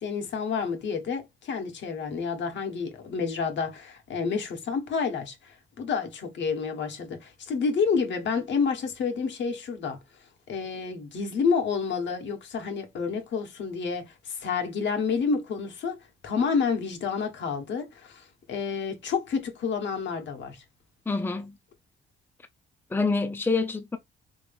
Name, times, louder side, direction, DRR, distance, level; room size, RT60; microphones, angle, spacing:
voice 1, 0.0-10.0 10.5-20.6, left 5 dB, 65° left, 1.3 m, -29 dB
voice 2, 21.1-21.6 22.9-24.0, left 3 dB, 10° left, 0.6 m, -26 dB
3.3 x 3.1 x 3.3 m
cardioid pair, 90°, 20 cm